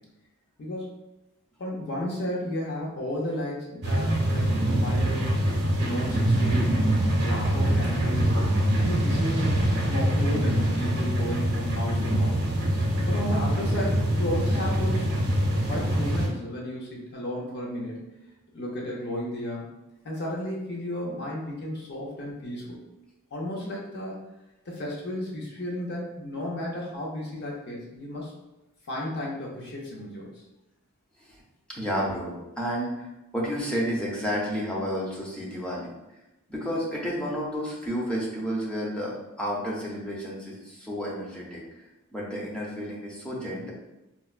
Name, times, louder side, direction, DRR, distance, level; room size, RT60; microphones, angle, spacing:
voice 1, 0.6-0.9 1.6-5.4 5.8-6.8 7.2-8.4 8.8-12.4 13.1-15.4 15.6-18.0 18.5-19.7 20.0-22.8 23.3-24.2 24.7-28.3 28.9-30.4 43.4-43.7, left 1 dB, 50° left, -3 dB, 0.7 m, -33 dB
sound 1, 3.8-16.3, right 1 dB, 50° right, 0.7 m, -24 dB
voice 2, 31.7-33.1 33.3-35.9 36.5-41.6 42.1-43.7, equal, 5° left, -5 dB, 0.6 m, -31 dB
4.2 x 2.1 x 2.4 m, 0.97 s
head